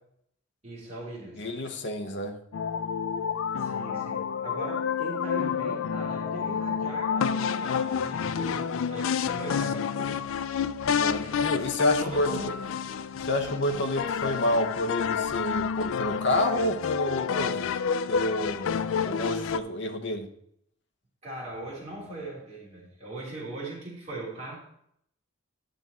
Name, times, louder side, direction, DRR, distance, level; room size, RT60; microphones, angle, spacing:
voice 1, 0.6-1.5 3.6-10.2 11.2-12.6 21.2-24.6, right 2 dB, 30° right, -6 dB, 3.4 m, -40 dB
voice 2, 1.4-2.4 11.0-12.3 13.1-17.6 18.1-20.3, left 1 dB, 55° left, 5 dB, 0.9 m, -29 dB
sound 1, 2.5-19.6, left 7 dB, 70° left, 0.3 m, -29 dB
9.8 x 6.1 x 4.1 m, 0.71 s
head